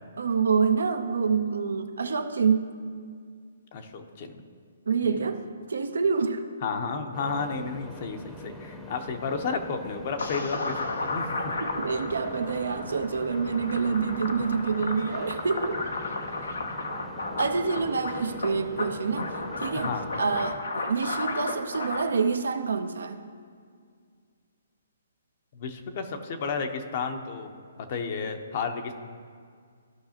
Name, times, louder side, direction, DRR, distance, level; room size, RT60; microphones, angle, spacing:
voice 1, 0.2-2.7 4.9-6.4 11.6-15.8 17.4-23.2, right 5 dB, 75° right, 8 dB, 0.6 m, -27 dB
voice 2, 3.7-4.4 5.0-5.3 6.6-11.4 19.7-20.1 25.5-27.5 27.9-28.9, left 5 dB, 45° left, 6 dB, 0.8 m, -32 dB
sound 1, 7.1-20.5, left 1 dB, ahead, 0.8 m, -43 dB
sound 2, 10.2-22.0, left 3 dB, 80° left, 0.8 m, -34 dB
14.0 x 5.5 x 2.9 m, 2.1 s
hypercardioid pair, 140°, 0 cm